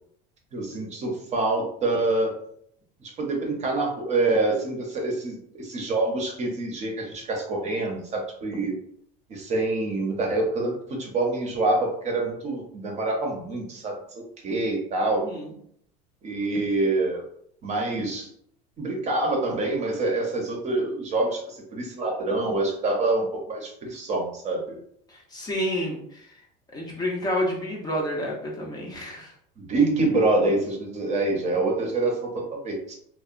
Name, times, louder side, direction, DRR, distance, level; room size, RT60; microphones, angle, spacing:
voice 1, 0.5-2.3 3.0-8.7 9.3-10.7 11.0-15.2 16.2-17.2 17.6-18.3 18.8-24.8 29.6-32.9, right 2 dB, 35° right, 1 dB, 0.6 m, -26 dB
voice 2, 15.2-15.5 25.1-26.3 26.7-29.3, equal, 20° left, -2 dB, 0.5 m, -29 dB
2.7 x 2.1 x 2.4 m, 0.69 s
supercardioid pair, 135°, 21 cm